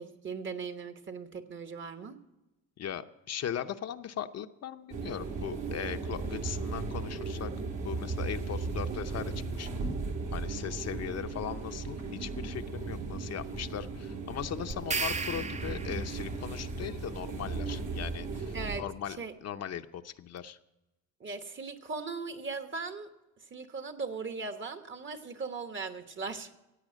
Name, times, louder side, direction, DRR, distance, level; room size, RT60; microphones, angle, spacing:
voice 1, 0.0-2.2 18.5-19.3 21.2-23.1 23.4-26.5, right 4 dB, 40° right, 8 dB, 1.3 m, -39 dB
voice 2, 2.8-7.5 7.8-9.7 10.3-20.6, left 9 dB, 55° left, 8 dB, 0.7 m, -39 dB
sound 1, 4.9-18.8, right 4 dB, 70° right, 3.2 m, -36 dB
sound 2, 14.7-16.3, right 4 dB, 25° right, 0.6 m, -34 dB
16.0 x 8.4 x 6.4 m, 0.98 s
cardioid pair, 90°, 30 cm